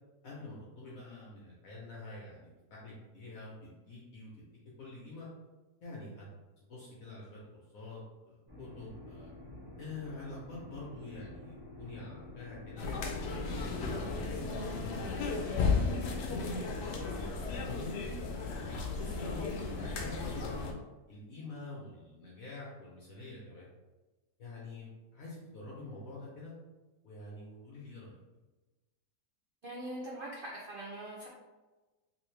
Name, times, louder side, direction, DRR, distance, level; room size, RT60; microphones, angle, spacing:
voice 1, 0.2-4.5 4.8-5.3 5.8-6.2 6.7-9.3 9.8-15.7 16.3-18.0 18.4-20.7 21.1-23.7 24.4-26.5 27.0-28.2, left 2 dB, 60° left, -5 dB, 1.1 m, -46 dB
sound 1, 8.5-14.8, left 1 dB, 20° right, 0.7 m, -49 dB
sound 2, 12.8-20.7, left 4 dB, 80° left, 1.2 m, -34 dB
voice 2, 29.6-31.3, right 1 dB, 75° right, -4 dB, 0.4 m, -42 dB
3.3 x 2.9 x 3.2 m, 1.2 s
omnidirectional pair, 1.8 m